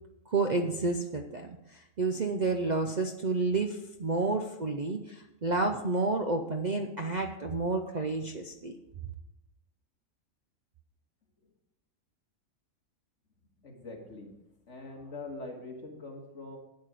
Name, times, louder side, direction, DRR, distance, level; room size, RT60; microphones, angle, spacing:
voice 1, 0.3-8.7, right 3 dB, 45° right, 5 dB, 0.6 m, -30 dB
voice 2, 13.6-14.3 14.7-16.6, left 3 dB, 60° left, 1 dB, 2.1 m, -43 dB
9.4 x 8.7 x 5.0 m, 0.90 s
omnidirectional pair, 1.4 m